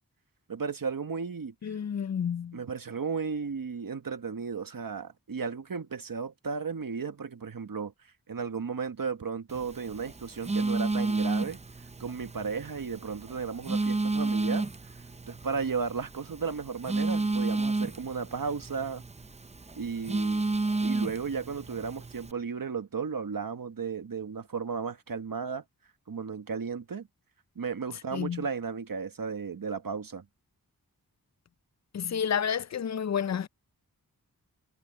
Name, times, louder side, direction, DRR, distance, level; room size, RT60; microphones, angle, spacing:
voice 1, 0.5-1.8 2.5-7.9 8.3-11.6 12.0-14.7 15.3-19.0 19.7-20.4 20.8-25.6 26.1-27.1 27.5-30.2, right 5 dB, 65° right, 1.5 m, -34 dB
voice 2, 1.6-2.6 28.1-28.4 31.9-33.5, left 8 dB, 50° left, 0.5 m, -30 dB
Telephone, 9.5-22.3, right 3 dB, 20° right, 0.5 m, -32 dB
wide cardioid pair, 85°, 36 cm